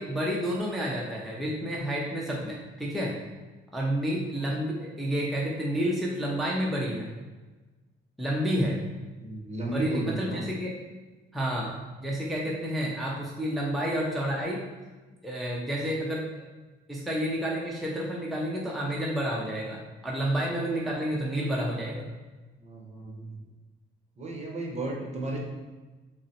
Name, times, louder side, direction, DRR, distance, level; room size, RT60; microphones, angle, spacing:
voice 1, 0.0-3.1 3.7-7.1 8.2-8.8 9.7-10.7 11.3-14.6 15.2-16.4 16.9-22.1, equal, ahead, -4 dB, 0.6 m, -30 dB
voice 2, 9.1-10.4 22.6-23.4 24.2-25.4, right 2 dB, 35° right, -1 dB, 0.9 m, -34 dB
3.8 x 2.0 x 4.1 m, 1.2 s
cardioid pair, 90°, 20 cm